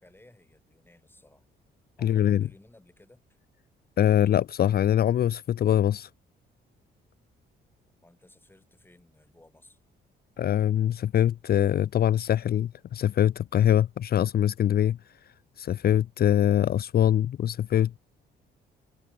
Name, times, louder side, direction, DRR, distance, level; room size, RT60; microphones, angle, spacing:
voice 1, 0.0-1.4 2.0-3.2 8.0-9.8, left 1 dB, 10° left, 6.0 m, -57 dB
voice 2, 2.0-2.4 4.0-6.1 10.4-15.0 15.6-18.0, left 10 dB, 55° left, 0.7 m, -23 dB
cardioid pair, 85°, 19 cm